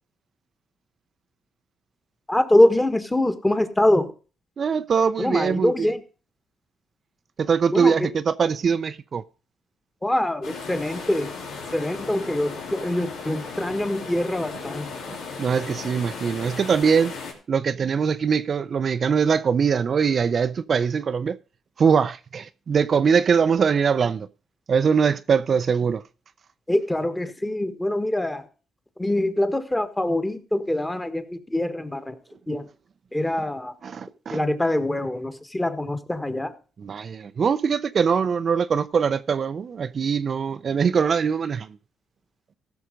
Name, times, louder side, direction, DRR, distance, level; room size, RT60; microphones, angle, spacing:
voice 1, 2.3-4.1 5.2-6.0 7.7-7.9 10.0-11.3 11.7-14.9 26.7-28.4 29.0-32.1 32.5-32.7 33.1-33.7 34.3-36.5, left 1 dB, 10° left, 1.5 m, -24 dB
voice 2, 4.6-5.9 7.4-9.2 15.1-17.1 17.5-21.4 21.8-24.3 24.7-26.0 33.8-34.4 36.8-41.7, right 6 dB, 50° right, 0.5 m, -22 dB
sound 1, 10.4-17.3, left 4 dB, 85° left, 3.1 m, -36 dB
15.5 x 6.3 x 5.1 m
cardioid pair, 85°, 0 cm